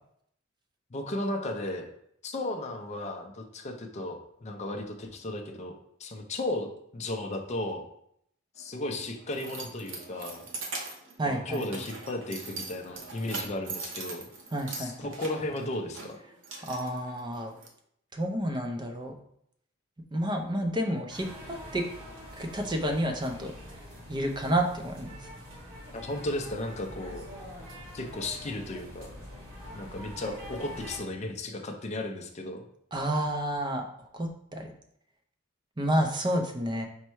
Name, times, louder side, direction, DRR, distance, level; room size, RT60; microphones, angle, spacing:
voice 1, 0.9-1.9 2.2-5.7 6.0-7.8 8.6-10.4 11.3-14.2 14.7-16.2 25.9-27.3 27.9-29.1 29.7-32.6, left 1 dB, 35° left, 3 dB, 0.5 m, -35 dB
Keys jangling, 8.6-17.7, right 4 dB, 65° right, 0.8 m, -42 dB
voice 2, 11.2-11.8 14.5-14.9 16.7-17.5 18.1-19.1 20.1-21.9 22.4-23.5 24.1-25.2 32.9-33.8 34.1-34.7 35.8-36.9, right 1 dB, 20° right, 4 dB, 0.5 m, -30 dB
sound 1, 21.1-31.0, left 1 dB, 85° right, 1.7 m, -45 dB
5.4 x 2.2 x 4.5 m, 0.71 s
head